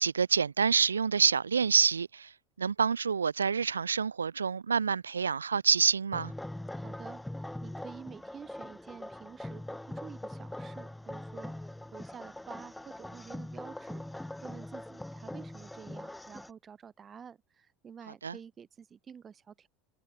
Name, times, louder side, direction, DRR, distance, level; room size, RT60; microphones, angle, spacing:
voice 1, 0.0-2.3 2.6-6.3 18.2-18.4, right 6 dB, 80° right, 0.5 m, -27 dB
sound 1, 6.1-16.5, left 1 dB, 5° left, 2.5 m, -42 dB
voice 2, 6.7-19.7, right 7 dB, 30° right, 5.4 m, -50 dB
figure-of-eight pair, 75°, 0 cm